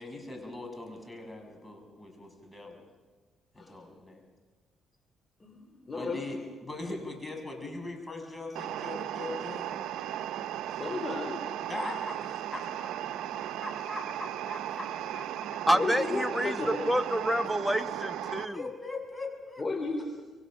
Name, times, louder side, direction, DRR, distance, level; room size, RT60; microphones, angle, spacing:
voice 1, 0.0-2.8 3.5-4.2 5.9-9.8 11.7-15.6 18.2-19.6, left 2 dB, 15° left, 3 dB, 6.3 m, -41 dB
voice 2, 5.4-6.2 10.7-11.5 15.7-16.9 19.6-20.0, left 3 dB, 35° left, 5 dB, 3.3 m, -34 dB
sound 1, 8.6-18.5, right 11 dB, 85° right, 0.7 m, -36 dB
voice 3, 15.7-16.5 16.9-18.6, equal, ahead, 7 dB, 1.3 m, -28 dB
27.0 x 23.0 x 6.3 m, 1.3 s
cardioid pair, 90°, 0 cm